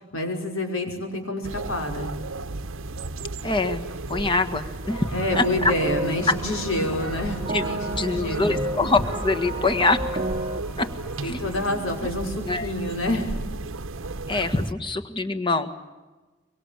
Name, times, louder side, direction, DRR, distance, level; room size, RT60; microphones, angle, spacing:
voice 1, 0.1-2.1 5.1-8.6 11.2-13.3, left 1 dB, 80° left, 4 dB, 5.6 m, -28 dB
sound 1, 1.4-14.7, right 2 dB, 75° right, 1.0 m, -34 dB
voice 2, 3.4-3.8 4.1-5.1 5.3-5.7 7.5-10.2 10.8-10.9 11.2-11.9 12.5-12.7 14.3-15.8, left 3 dB, 25° left, 7 dB, 1.7 m, -24 dB
sound 2, 4.8-12.1, left 1 dB, 5° left, 3.9 m, -40 dB
sound 3, 5.3-10.6, right 1 dB, 30° right, 1.0 m, -32 dB
24.5 x 24.0 x 9.0 m, 1.2 s
head